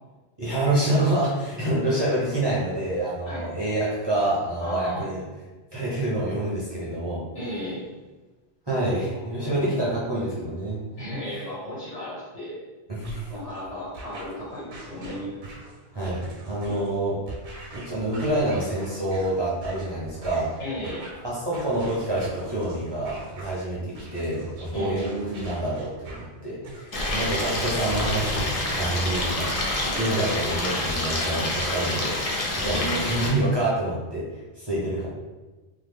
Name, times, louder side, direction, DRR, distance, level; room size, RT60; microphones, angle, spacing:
voice 1, 0.4-5.2 5.7-7.2 8.7-10.8 12.9-13.3 15.9-17.2 17.7-20.5 21.2-29.5 30.0-34.2 34.6-35.1, right 1 dB, 30° right, -8 dB, 0.6 m, -27 dB
voice 2, 4.6-5.0 7.3-7.8 9.0-9.5 11.0-12.6 13.3-15.4 16.6-17.3 20.6-21.0 24.7-25.6 29.8-30.0 32.6-33.2, equal, 90° left, -7 dB, 1.7 m, -35 dB
sound 1, 13.0-31.4, right 2 dB, 85° right, 0.9 m, -43 dB
Stream, 26.9-33.3, left 2 dB, 45° left, 0.5 m, -27 dB
2.9 x 2.1 x 3.5 m, 1.2 s
omnidirectional pair, 1.2 m